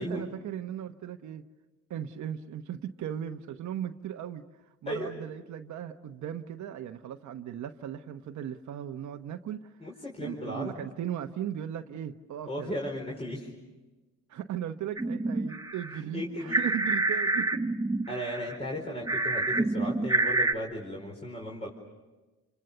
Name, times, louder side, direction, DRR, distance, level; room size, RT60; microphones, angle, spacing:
voice 1, 0.0-1.5 1.9-4.4 4.8-9.7 10.2-12.7 14.3-17.7, right 10 dB, 70° right, 6 dB, 1.1 m, -37 dB
voice 2, 9.8-10.8 12.5-13.5 16.1-16.6 18.1-21.7, equal, 20° left, 0 dB, 4.6 m, -35 dB
sound 1, 15.0-16.0 16.4-18.8 19.1-20.5, right 2 dB, 10° right, 1.0 m, -28 dB
28.5 x 25.5 x 6.8 m, 1.2 s
cardioid pair, 90°, 30 cm